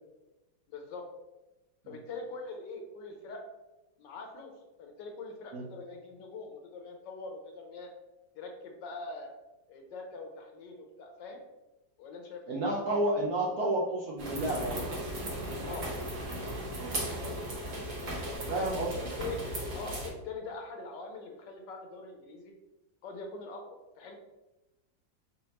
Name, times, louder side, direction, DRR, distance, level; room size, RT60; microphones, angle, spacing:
voice 1, 0.7-1.1 1.9-3.4 4.0-4.5 4.8-7.9 8.4-9.3 9.7-11.4 12.0-12.6 15.6-15.9 17.1-17.5 18.2-18.7 18.9-19.4 19.7-22.5 23.0-24.2, left 3 dB, 70° left, 3 dB, 1.2 m, -43 dB
voice 2, 12.5-15.0 16.7-17.0 18.5-18.9, right 1 dB, 70° right, -3 dB, 0.9 m, -31 dB
sound 1, 14.2-20.1, right 1 dB, 45° right, 1.2 m, -36 dB
4.2 x 3.7 x 2.8 m, 1.0 s
omnidirectional pair, 2.2 m